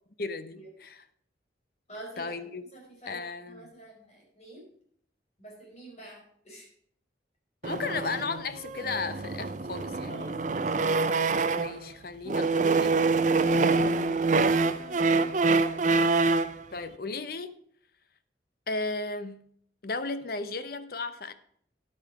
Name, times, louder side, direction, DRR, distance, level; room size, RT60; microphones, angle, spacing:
voice 1, 0.2-1.0 2.2-2.6 3.1-3.7 7.6-10.1 11.5-13.0 13.8-15.3 16.7-17.5 18.7-19.5 19.8-21.3, left 3 dB, 55° left, 0.8 m, -35 dB
voice 2, 1.9-2.4 2.7-4.7 5.4-6.7 10.1-10.8, right 1 dB, 40° left, 4.8 m, -47 dB
sound 1, 7.6-11.8 12.3-16.6, right 3 dB, 45° right, 0.6 m, -25 dB
10.5 x 8.5 x 4.7 m
head